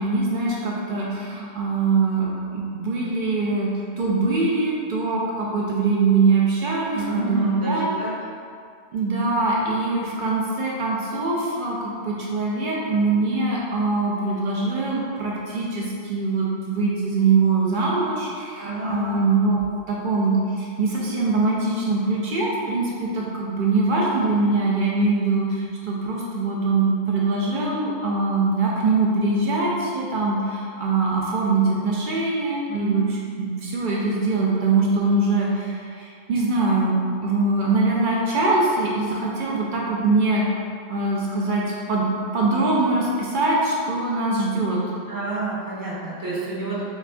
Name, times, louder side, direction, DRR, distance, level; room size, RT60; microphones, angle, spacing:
voice 1, 0.0-3.7 4.0-7.9 8.9-40.5 40.9-41.6 41.9-42.1 42.3-44.8, right 3 dB, 60° right, -4 dB, 0.6 m, -23 dB
voice 2, 6.9-8.1 18.6-19.3 32.7-33.1 45.1-46.8, right 3 dB, 20° right, -10 dB, 0.7 m, -29 dB
4.2 x 2.5 x 2.2 m, 2.3 s
omnidirectional pair, 1.1 m